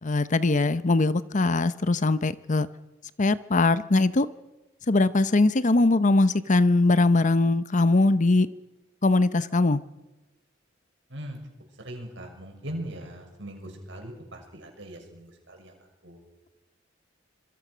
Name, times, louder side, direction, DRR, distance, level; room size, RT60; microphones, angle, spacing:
voice 1, 0.0-2.7 3.2-4.3 4.9-8.5 9.0-9.8, left 2 dB, 40° left, 15 dB, 0.8 m, -21 dB
voice 2, 11.8-15.7 16.0-16.2, right 1 dB, 65° right, 3 dB, 6.5 m, -40 dB
26.5 x 22.0 x 6.2 m, 1.1 s
head